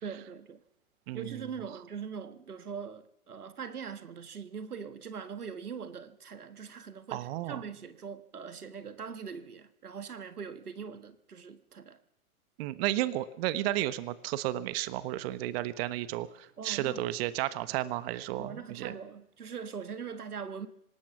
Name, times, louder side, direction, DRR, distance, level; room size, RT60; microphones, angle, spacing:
voice 1, 0.0-0.6 1.1-12.0 16.6-17.1 18.3-20.7, right 6 dB, 85° right, 1.6 m, -42 dB
voice 2, 1.1-1.5 7.1-7.6 12.6-18.9, right 15 dB, 40° right, 1.3 m, -33 dB
25.5 x 19.0 x 6.1 m
hypercardioid pair, 115°, 44 cm